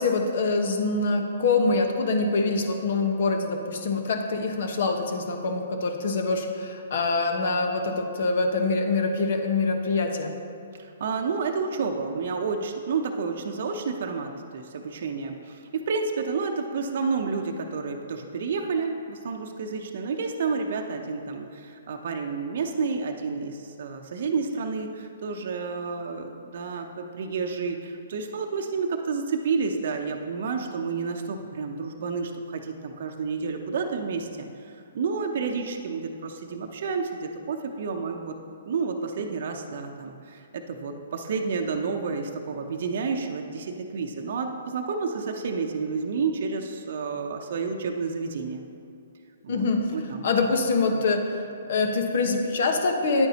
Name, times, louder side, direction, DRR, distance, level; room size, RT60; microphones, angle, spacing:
voice 1, 0.0-10.3 49.5-49.9 50.2-51.4 51.7-53.3, left 3 dB, 60° left, 4 dB, 1.1 m, -25 dB
voice 2, 10.7-38.3 38.7-48.6 49.4-50.3 50.9-51.0, right 4 dB, 60° right, 3 dB, 0.7 m, -30 dB
9.9 x 8.9 x 2.9 m, 2.6 s
hypercardioid pair, 135°, 0 cm